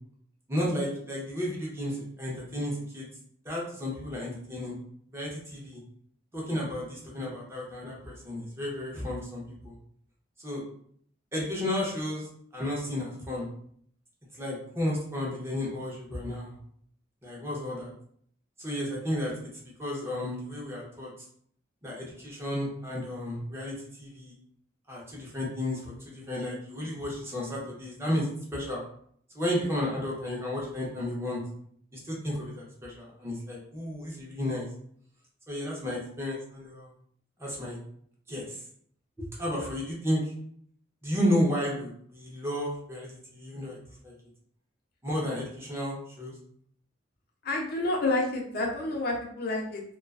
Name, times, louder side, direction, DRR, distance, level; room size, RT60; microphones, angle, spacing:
voice 1, 0.5-3.1 3.4-4.7 5.1-5.8 6.3-9.7 10.4-10.6 11.3-12.3 12.5-13.5 14.3-16.6 17.2-17.9 18.6-21.1 21.8-24.3 24.9-28.8 29.3-31.4 31.9-34.7 35.5-36.9 37.4-37.8 38.3-38.6 39.2-40.2 41.0-43.8 44.0-44.1 45.0-46.3, left 1 dB, 15° right, -4 dB, 0.6 m, -32 dB
voice 2, 47.4-49.8, left 2 dB, 50° left, 0 dB, 0.5 m, -29 dB
2.3 x 2.3 x 2.3 m, 0.64 s
head